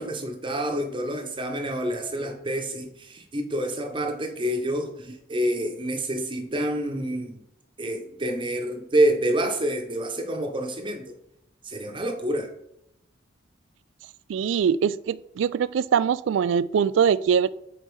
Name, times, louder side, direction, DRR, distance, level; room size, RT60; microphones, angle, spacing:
voice 1, 0.0-7.4 7.8-11.1 11.6-12.5, right 1 dB, 25° right, 4 dB, 0.8 m, -27 dB
voice 2, 14.3-17.5, right 7 dB, 90° right, 18 dB, 0.3 m, -22 dB
5.2 x 4.3 x 4.6 m, 0.77 s
head